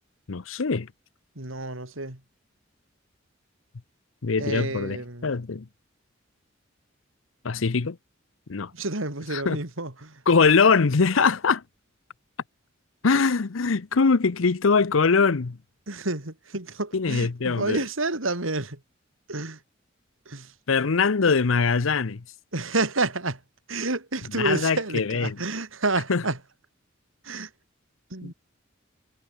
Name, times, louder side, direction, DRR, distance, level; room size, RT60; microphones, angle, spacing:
voice 1, 0.3-0.9 4.2-5.7 7.4-8.0 8.5-8.7 9.3-9.6 10.3-11.6 13.0-15.6 16.9-17.8 20.7-22.2 24.3-25.3 26.1-26.2 28.2-28.3, left 4 dB, 80° left, 0.7 m, -22 dB
voice 2, 1.4-2.2 4.4-5.3 8.7-10.2 15.9-18.8 19.3-19.6 20.3-20.5 22.5-23.4 23.7-26.4 27.2-27.5 28.1-28.3, right 2 dB, 85° right, 4.0 m, -29 dB
head